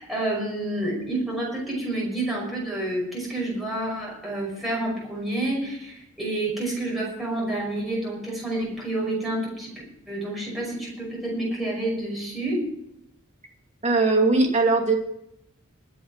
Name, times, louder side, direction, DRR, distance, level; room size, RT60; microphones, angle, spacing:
voice 1, 0.0-9.7 10.1-12.7, right 1 dB, ahead, -4 dB, 5.6 m, -29 dB
voice 2, 13.8-14.9, right 3 dB, 35° right, 2 dB, 2.6 m, -20 dB
21.0 x 7.9 x 4.8 m, 0.79 s
head